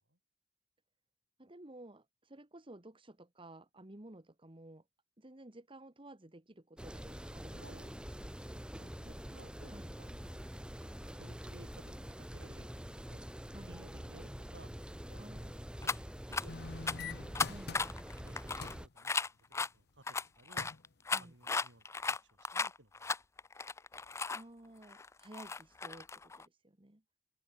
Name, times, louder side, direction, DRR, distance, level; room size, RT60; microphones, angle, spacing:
voice 1, 1.4-4.8 5.2-7.9 9.7-9.9 13.5-13.8 15.2-15.8 17.4-17.8 21.1-21.3 24.3-27.0, right 1 dB, 30° right, 1.7 m, -54 dB
sound 1, 6.8-18.9, equal, 5° right, 2.7 m, -46 dB
voice 2, 7.5-7.9 8.7-10.4 10.8-13.2 13.7-14.7 15.1-16.0 16.4-16.7 17.0-17.3 18.2-19.1 19.5-20.7 21.1-21.8 22.3-23.2, right 1 dB, 85° right, 5.9 m, -59 dB
sound 2, 15.8-16.0 16.3-16.4 16.9-17.0 17.3-19.7 20.1-24.4 24.8-26.5, left 4 dB, 15° left, 0.4 m, -36 dB
sound 3, 16.5-18.2 18.6-18.9 20.1-20.3 20.6-20.9 21.4-21.5, left 4 dB, 60° left, 0.9 m, -45 dB
head